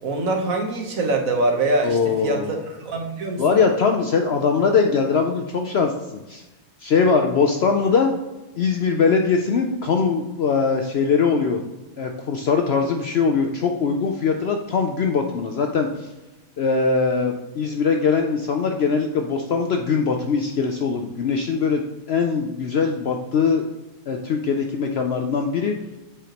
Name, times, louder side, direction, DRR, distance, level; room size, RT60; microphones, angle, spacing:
voice 1, 0.0-3.6, right 2 dB, 65° right, 2 dB, 1.5 m, -24 dB
voice 2, 1.8-2.6 3.4-6.4 6.8-8.1 8.6-11.6 12.0-16.1 16.6-21.8 22.1-23.7 24.1-25.7, left 5 dB, 60° left, 3 dB, 0.7 m, -21 dB
8.2 x 4.9 x 2.9 m, 1.1 s
omnidirectional pair, 1.6 m